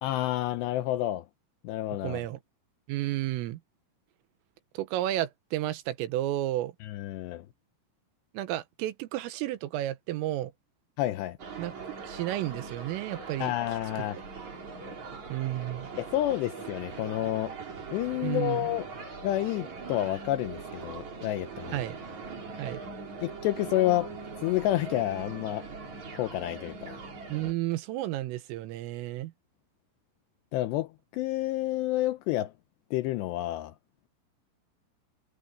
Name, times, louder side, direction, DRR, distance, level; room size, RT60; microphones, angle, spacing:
voice 1, 0.0-1.2 1.6-2.2 6.8-7.4 11.0-11.4 13.4-14.2 16.0-17.6 17.9-18.9 19.2-21.8 23.2-24.1 24.4-25.7 26.1-27.0 30.5-32.5 32.9-33.7, left 15 dB, 85° left, 2.5 m, -29 dB
voice 2, 2.0-2.4 2.9-3.6 4.8-6.7 8.4-10.5 11.6-11.7 12.0-13.5 14.0-14.1 15.3-15.9 18.2-18.7 21.7-22.0 22.6-22.8 27.3-29.3, right 14 dB, 85° right, 3.7 m, -32 dB
sound 1, 11.4-27.5, right 4 dB, 40° right, 4.7 m, -41 dB
omnidirectional pair, 5.9 m